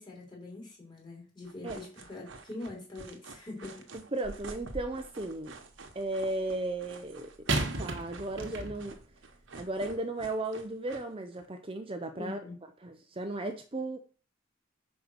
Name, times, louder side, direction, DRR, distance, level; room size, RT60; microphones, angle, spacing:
voice 1, 0.0-3.9 12.2-12.6, left 2 dB, 25° left, 3.3 m, -43 dB
sound 1, 1.4-11.5, right 3 dB, 90° right, 1.3 m, -49 dB
voice 2, 3.9-5.5 5.9-7.3 7.8-9.0 9.5-12.4 12.8-14.0, right 2 dB, 30° right, 0.7 m, -35 dB
sound 2, 4.2-5.1 7.5-9.0 9.8-9.9, right 2 dB, 75° right, 1.2 m, -34 dB
5.3 x 5.0 x 6.3 m
head